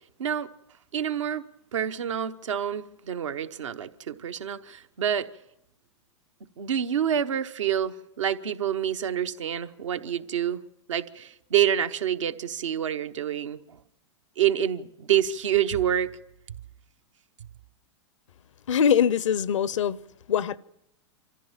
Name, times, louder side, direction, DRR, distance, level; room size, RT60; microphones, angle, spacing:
voice 1, 0.9-1.5 1.7-5.3 6.6-10.6 10.9-13.6 14.4-16.1, right 10 dB, 85° right, 1.0 m, -27 dB
voice 2, 18.7-20.0 20.3-20.6, left 8 dB, 85° left, 0.7 m, -22 dB
25.0 x 14.5 x 7.3 m
hypercardioid pair, 115°, 16 cm